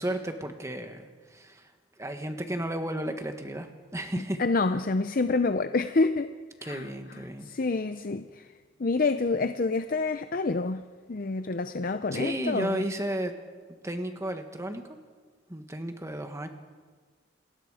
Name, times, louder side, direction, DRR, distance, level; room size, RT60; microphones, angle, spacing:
voice 1, 0.0-1.7 2.0-3.7 3.9-4.4 6.6-7.5 12.1-13.3 13.8-14.8 15.5-16.5, right 1 dB, 15° right, 6 dB, 1.5 m, -33 dB
voice 2, 4.4-6.3 6.6-6.9 7.1-8.5 8.8-10.8 11.1-12.8, left 3 dB, 45° left, 10 dB, 0.6 m, -27 dB
28.5 x 19.5 x 5.0 m, 1.5 s
head